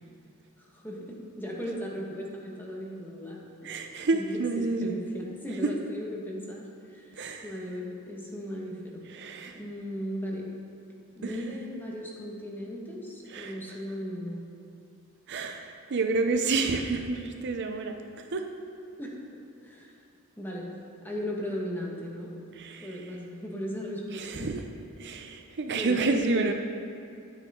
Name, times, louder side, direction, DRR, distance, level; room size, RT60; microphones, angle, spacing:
voice 1, 0.6-7.1 7.4-9.0 9.5-10.5 11.1-14.4 19.0-19.1 19.6-20.0 20.4-20.7 21.0-22.3 22.8-24.6 25.7-26.5, equal, 10° left, -2 dB, 1.4 m, -37 dB
voice 2, 3.6-5.0 5.6-5.7 7.2-7.6 9.1-9.6 11.2-11.4 13.3-13.8 15.3-17.9 18.3-18.5 22.5-22.9 24.1-24.6 25.0-26.5, right 3 dB, 55° right, 5 dB, 0.6 m, -29 dB
10.0 x 9.1 x 3.7 m, 2.5 s
head